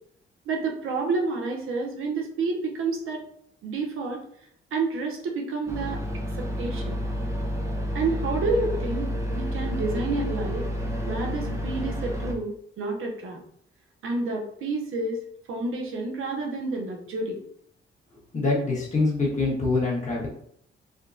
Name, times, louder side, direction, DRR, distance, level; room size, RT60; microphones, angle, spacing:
voice 1, 0.5-3.2 3.6-4.2 4.7-6.0 6.4-7.0 7.9-10.7 11.0-13.4 14.0-15.2 15.5-17.4, right 3 dB, 80° right, 1 dB, 0.7 m, -29 dB
sound 1, 5.7-12.3, equal, 15° right, 0.5 m, -30 dB
voice 2, 18.3-20.3, left 3 dB, 35° left, -4 dB, 1.2 m, -24 dB
3.5 x 2.2 x 2.5 m, 0.66 s
cardioid pair, 105°, 21 cm